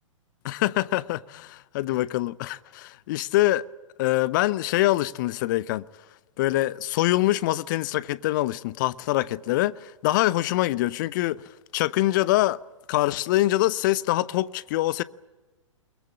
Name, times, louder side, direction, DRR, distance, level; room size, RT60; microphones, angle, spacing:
voice 1, 0.4-3.6 4.0-5.8 6.4-11.4 11.7-12.6 12.9-15.0, left 16 dB, 40° left, 0.8 m, -24 dB
22.5 x 22.0 x 8.7 m
figure-of-eight pair, 110°, 16 cm